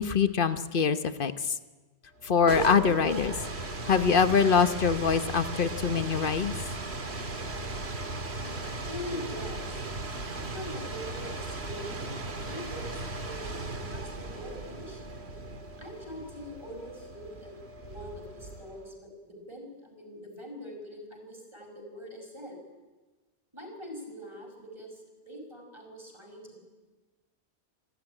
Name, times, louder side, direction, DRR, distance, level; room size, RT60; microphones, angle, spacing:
voice 1, 0.0-1.5 2.2-3.3 3.9-6.6, left 6 dB, 50° left, 11 dB, 1.1 m, -24 dB
sound 1, 2.2-18.9, right 2 dB, 70° right, 2.0 m, -37 dB
voice 2, 8.4-9.9 10.3-15.0 15.8-17.5 17.8-22.6 23.5-26.6, equal, 25° right, 1 dB, 5.7 m, -43 dB
28.5 x 12.5 x 10.0 m, 1.3 s
omnidirectional pair, 1.2 m